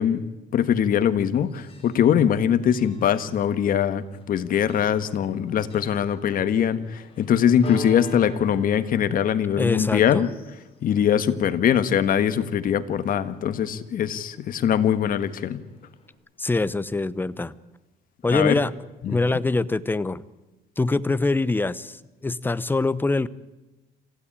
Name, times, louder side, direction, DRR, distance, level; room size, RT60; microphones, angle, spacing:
voice 1, 0.0-10.3 10.8-15.6 18.3-18.6 19.0-19.2, left 9 dB, 55° left, 12 dB, 1.5 m, -22 dB
Church bell, 1.1-16.1, left 4 dB, 35° left, 5.7 m, -46 dB
voice 2, 9.6-10.3 16.4-17.5 18.2-18.7 19.1-20.2 20.8-22.0 22.2-23.3, left 3 dB, 10° left, 16 dB, 0.8 m, -24 dB
26.0 x 16.0 x 8.9 m, 1.1 s
cardioid pair, 110°, 17 cm